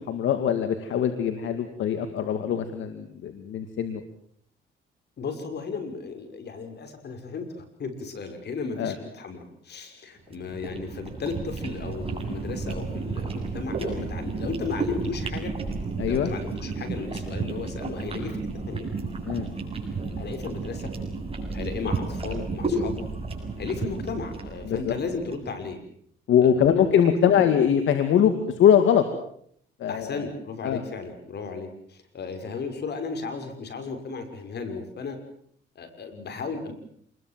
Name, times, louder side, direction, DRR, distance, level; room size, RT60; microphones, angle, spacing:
voice 1, 0.1-4.0 8.8-8.9 16.0-16.3 19.3-19.5 24.7-24.9 26.3-29.1 29.8-30.2 30.6-30.8, left 8 dB, 75° left, 8 dB, 2.3 m, -22 dB
voice 2, 5.2-7.5 7.8-15.5 16.1-18.3 18.7-18.9 20.0-20.9 21.5-23.0 23.6-25.8 26.4-26.8 27.1-27.4 29.9-35.2 35.8-36.7, left 4 dB, 55° left, 7 dB, 6.0 m, -35 dB
sound 1, 10.3-25.5, right 3 dB, 30° right, 8.0 m, -32 dB
28.0 x 21.5 x 7.6 m, 0.66 s
cardioid pair, 90°, 20 cm